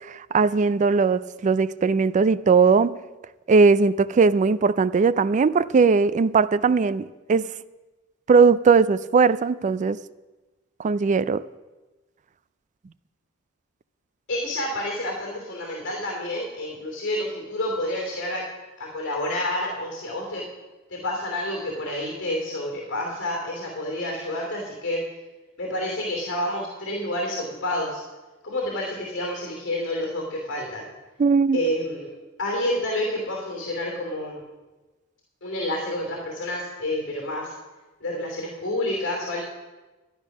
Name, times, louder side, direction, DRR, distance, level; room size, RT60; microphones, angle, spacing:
voice 1, 0.1-3.0 3.5-7.5 8.3-10.0 10.8-11.4 31.2-31.6, right 4 dB, 35° right, 0.3 m, -19 dB
voice 2, 14.3-18.4 18.8-20.4 20.9-25.0 25.6-28.0 28.4-30.9 31.5-32.1 32.4-34.5 35.4-37.5 38.0-39.4, left 1 dB, 60° left, 2.8 m, -29 dB
12.5 x 10.0 x 5.9 m
head